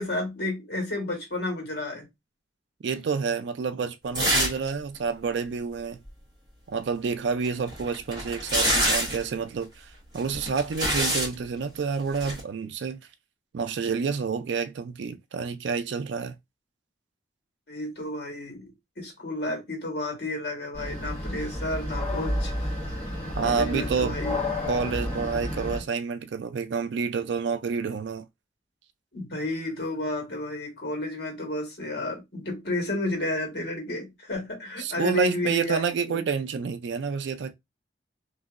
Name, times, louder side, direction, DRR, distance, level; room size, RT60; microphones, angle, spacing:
voice 1, 0.0-2.0 17.7-22.8 23.4-24.4 29.1-35.8 36.1-36.2, left 1 dB, 60° left, 1.4 m, -31 dB
voice 2, 2.8-6.0 6.7-13.0 13.5-16.4 23.4-24.2 24.7-28.2 34.8-37.5, right 5 dB, 70° right, 0.4 m, -29 dB
sound 1, 4.1-4.7 4.9-5.0 7.4-9.2 10.2-11.3 12.1-12.4, right 1 dB, 25° right, 1.5 m, -25 dB
sound 2, 20.7-25.8, left 1 dB, 10° left, 1.3 m, -31 dB
2.9 x 2.7 x 2.4 m
head